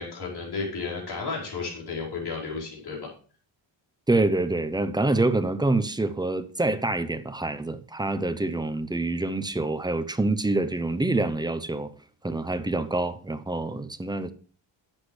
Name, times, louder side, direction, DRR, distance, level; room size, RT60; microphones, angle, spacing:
voice 1, 0.0-3.1, left 4 dB, 50° left, 4.9 m, -33 dB
voice 2, 4.1-11.9 12.2-14.3, right 2 dB, 10° right, 0.6 m, -26 dB
11.5 x 8.0 x 3.2 m
wide cardioid pair, 125°, 49 cm